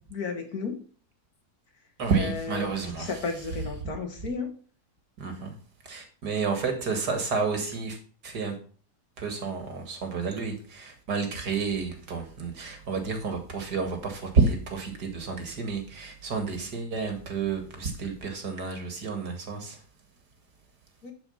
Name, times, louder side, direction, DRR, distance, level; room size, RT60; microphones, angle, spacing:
voice 1, 0.1-0.8 2.2-2.7 3.0-4.5 21.0-21.1, left 4 dB, 60° left, 2.3 m, -33 dB
voice 2, 2.0-3.2 5.2-5.5 5.8-8.0 8.2-8.5 9.2-19.8, right 4 dB, 75° right, 2.5 m, -30 dB
11.0 x 4.9 x 5.7 m
omnidirectional pair, 1.8 m